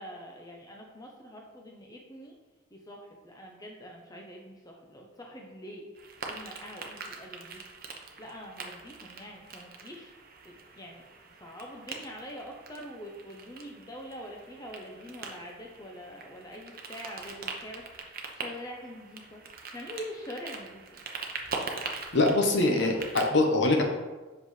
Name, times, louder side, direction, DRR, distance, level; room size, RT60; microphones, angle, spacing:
voice 1, 0.0-2.3 2.7-5.8 6.2-7.6 8.2-10.1 10.4-11.0 11.4-19.4 19.7-21.0, equal, 20° left, 0 dB, 0.7 m, -44 dB
sound 1, 5.9-23.2, right 4 dB, 45° right, 0.8 m, -42 dB
voice 2, 22.1-23.8, left 2 dB, 55° left, 2 dB, 1.0 m, -23 dB
7.7 x 5.6 x 3.2 m, 1.2 s
head